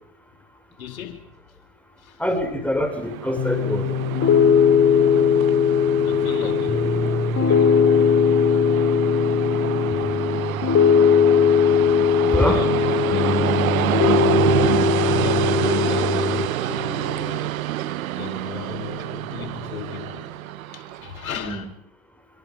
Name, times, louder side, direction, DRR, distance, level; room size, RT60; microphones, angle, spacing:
voice 1, 0.8-1.3 2.0-2.2 4.4-4.5 6.0-7.1 11.8-12.0 12.3-13.4 15.1-17.6 18.2-20.3 20.7-21.6, left 9 dB, 80° left, 4.8 m, -36 dB
voice 2, 2.2-3.9 12.3-12.6 21.4-21.6, left 1 dB, 5° left, 6.0 m, -24 dB
Train, 2.7-21.3, right 14 dB, 75° right, 1.1 m, -27 dB
Piano, 3.4-16.5, left 7 dB, 35° left, 3.7 m, -19 dB
26.5 x 26.0 x 5.3 m
hypercardioid pair, 80°, 41 cm